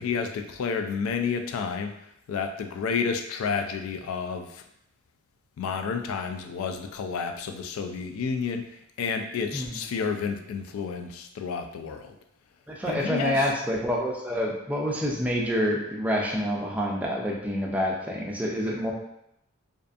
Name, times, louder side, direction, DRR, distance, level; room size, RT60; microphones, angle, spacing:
voice 1, 0.0-1.9 2.3-4.7 5.6-12.2 12.9-13.5, left 5 dB, 80° left, 6 dB, 0.3 m, -30 dB
voice 2, 12.7-18.9, equal, 5° right, -2 dB, 0.3 m, -27 dB
2.5 x 2.4 x 2.4 m, 0.78 s
head